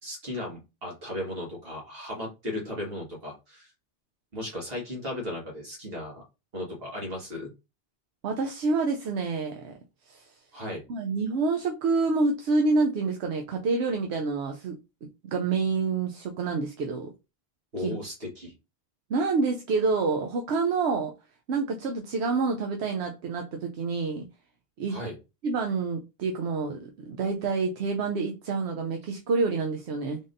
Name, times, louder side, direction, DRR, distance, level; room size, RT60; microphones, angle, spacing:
voice 1, 0.0-3.7 4.3-6.2 6.5-7.5 10.5-10.8 17.7-18.5 24.9-25.2, left 1 dB, 65° right, 1.8 m, -36 dB
voice 2, 8.2-9.7 10.1-10.3 10.9-17.1 17.8-17.9 19.1-21.1 21.5-24.3 24.8-25.0 25.4-30.2, right 4 dB, 85° right, 0.9 m, -28 dB
3.8 x 3.5 x 2.5 m
omnidirectional pair, 1.1 m